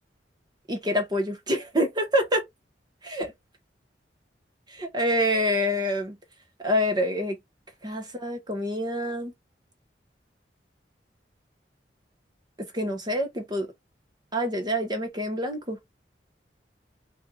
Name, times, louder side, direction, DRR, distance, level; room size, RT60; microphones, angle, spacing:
voice 1, 0.7-2.4 3.0-3.3 4.7-6.2 6.6-7.3 7.8-9.3 12.6-13.7 14.3-15.8, equal, 25° right, 1.1 m, -26 dB
4.4 x 2.6 x 2.3 m
head